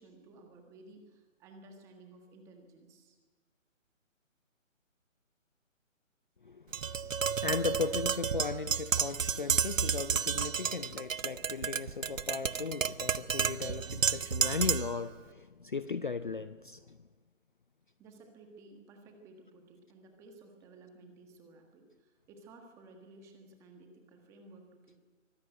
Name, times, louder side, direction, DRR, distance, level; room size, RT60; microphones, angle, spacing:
voice 1, 0.0-3.2 18.0-25.0, right 2 dB, 5° right, 1.4 m, -55 dB
voice 2, 6.4-17.0, left 5 dB, 40° left, 0.6 m, -37 dB
Tap, 6.7-15.0, right 7 dB, 70° right, 0.9 m, -31 dB
24.0 x 15.5 x 9.1 m
figure-of-eight pair, 160°, 40 cm